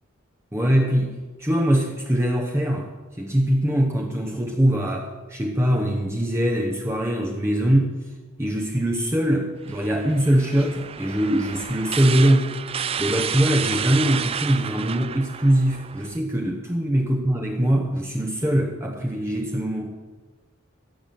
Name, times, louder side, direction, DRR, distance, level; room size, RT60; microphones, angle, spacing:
voice 1, 0.5-2.9 3.2-7.9 8.4-12.5 13.0-19.9, right 1 dB, 15° right, 0 dB, 1.0 m, -22 dB
sound 1, 9.7-16.2, right 8 dB, 30° right, 0.4 m, -31 dB
15.5 x 6.0 x 7.6 m, 1.3 s
head